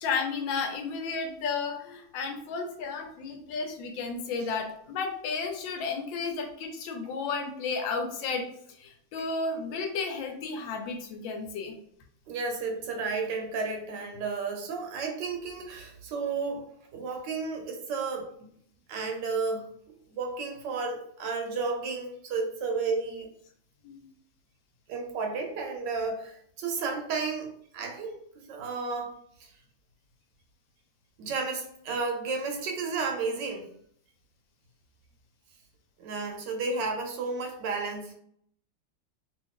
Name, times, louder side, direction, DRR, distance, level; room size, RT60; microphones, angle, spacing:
voice 1, 0.0-8.5 8.8-11.7 23.8-24.0, left 4 dB, 75° left, 4 dB, 1.3 m, -33 dB
voice 2, 12.3-18.5 18.9-19.7 20.1-23.3 24.9-29.1 29.4-29.5 31.2-33.7 36.0-38.1, right 4 dB, 75° right, 3 dB, 1.2 m, -32 dB
3.0 x 2.6 x 3.5 m, 0.66 s
omnidirectional pair, 2.1 m